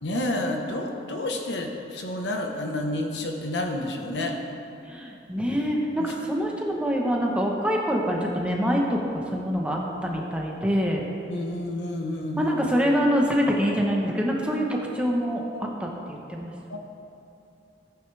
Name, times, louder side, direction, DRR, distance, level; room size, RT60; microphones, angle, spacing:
voice 1, 0.0-4.4 6.0-6.1 11.3-12.5 16.7-16.8, left 1 dB, 85° left, 2 dB, 1.2 m, -30 dB
voice 2, 4.8-11.0 12.4-16.5, equal, 5° right, -1 dB, 1.1 m, -25 dB
15.5 x 9.6 x 3.4 m, 2.7 s
head